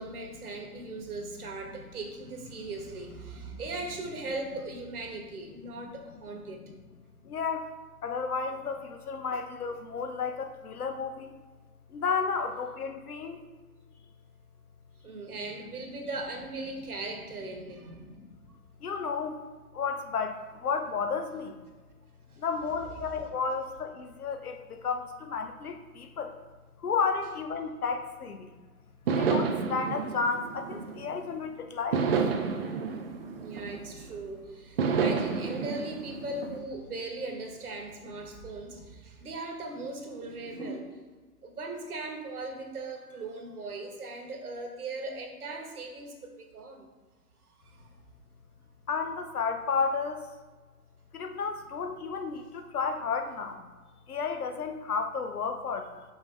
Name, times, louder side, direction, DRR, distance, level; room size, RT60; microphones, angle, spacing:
voice 1, 0.0-6.6 15.0-18.0 22.3-22.4 33.3-40.9 41.4-46.9 47.7-47.9, right 2 dB, 70° right, 3 dB, 1.4 m, -39 dB
voice 2, 7.2-7.7 8.0-11.4 11.9-13.5 18.1-18.4 18.8-19.4 19.7-21.6 22.4-26.3 26.8-28.6 29.1-32.1 48.9-50.3 51.1-53.7 54.1-56.0, left 5 dB, 70° left, 6 dB, 0.9 m, -32 dB
sound 1, 29.1-31.3 31.9-34.2 34.8-36.6, right 5 dB, 40° right, 0.5 m, -30 dB
5.8 x 5.6 x 3.3 m, 1.3 s
figure-of-eight pair, 120°, 47 cm